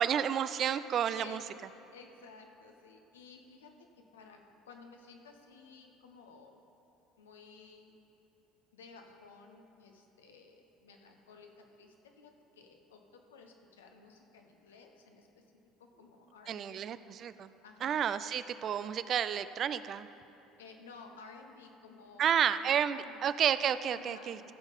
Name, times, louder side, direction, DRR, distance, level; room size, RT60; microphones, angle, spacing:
voice 1, 0.0-1.4 16.5-17.5 17.8-20.1 22.2-24.5, right 9 dB, 50° right, 13 dB, 0.4 m, -31 dB
voice 2, 1.9-3.9 4.1-4.4 4.6-6.6 7.2-7.9 8.7-15.4 15.8-16.8 17.4-18.0 20.6-23.2 23.9-24.4, left 4 dB, 85° left, 3 dB, 0.9 m, -55 dB
15.0 x 5.4 x 5.4 m, 3.0 s
hypercardioid pair, 65°, 0 cm